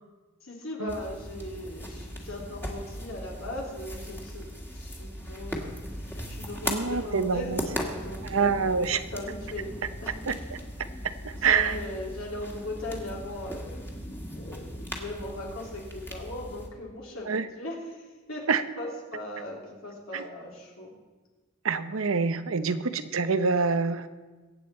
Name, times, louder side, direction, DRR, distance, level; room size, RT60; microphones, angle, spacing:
voice 1, 0.4-9.7 10.0-10.4 11.3-13.8 14.3-18.0 18.3-18.5 18.8-20.9 22.7-22.8, left 1 dB, 75° left, -2 dB, 3.5 m, -39 dB
sound 1, 0.9-16.7, equal, 10° left, 1.7 m, -38 dB
voice 2, 6.7-7.6 8.2-9.0 10.3-10.4 11.2-11.7 17.3-17.5 18.5-18.6 20.1-20.2 21.6-24.1, right 5 dB, 85° right, 11 dB, 0.8 m, -26 dB
22.5 x 8.8 x 4.4 m, 1.3 s
head